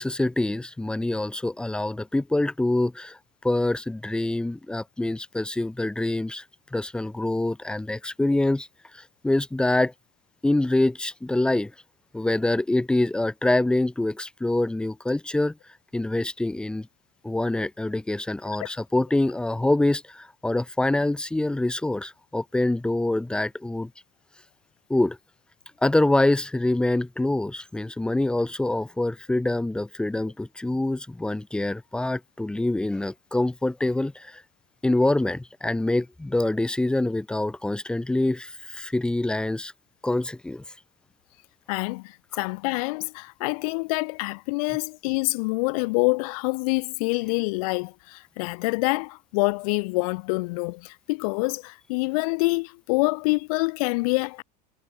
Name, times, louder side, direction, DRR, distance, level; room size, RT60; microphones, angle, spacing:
voice 1, 0.0-3.2 3.4-6.4 6.7-8.7 8.9-9.9 10.4-11.7 12.1-15.6 15.9-16.9 17.2-23.9 24.9-25.2 25.8-34.4 34.8-39.7 40.0-40.6, left 2 dB, 5° left, 0.7 m, -25 dB
voice 2, 41.7-54.4, left 27 dB, 65° left, 0.8 m, -26 dB
supercardioid pair, 125°, 20 cm